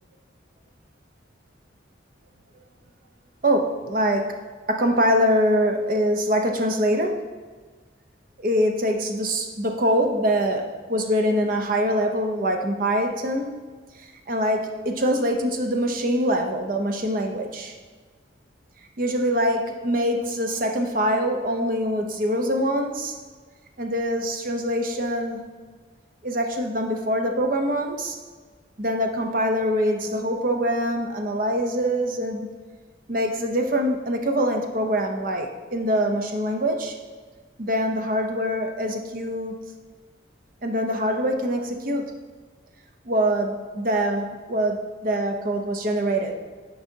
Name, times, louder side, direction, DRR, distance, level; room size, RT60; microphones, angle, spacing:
voice 1, 3.4-4.4 4.7-7.2 8.4-13.6 14.0-17.7 19.0-23.2 23.8-25.4 26.2-28.2 28.8-32.5 33.1-37.0 37.6-39.6 40.6-42.1 43.0-46.3, equal, 45° right, 4 dB, 0.6 m, -24 dB
9.0 x 4.7 x 2.7 m, 1.5 s
head